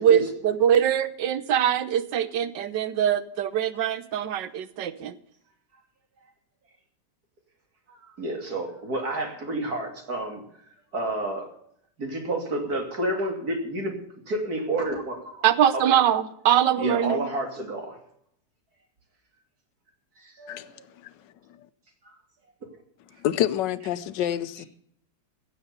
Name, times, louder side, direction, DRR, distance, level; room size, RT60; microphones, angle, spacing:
voice 1, 0.0-5.1 15.4-17.3, right 9 dB, 90° right, 1.6 m, -23 dB
voice 2, 8.2-10.4 10.9-11.5 12.0-13.9 14.3-15.2 15.7-16.0 16.8-18.0 20.4-20.7, right 1 dB, 60° right, 3.2 m, -29 dB
voice 3, 23.2-24.7, left 11 dB, 90° left, 1.4 m, -27 dB
15.5 x 7.9 x 6.8 m
omnidirectional pair, 1.9 m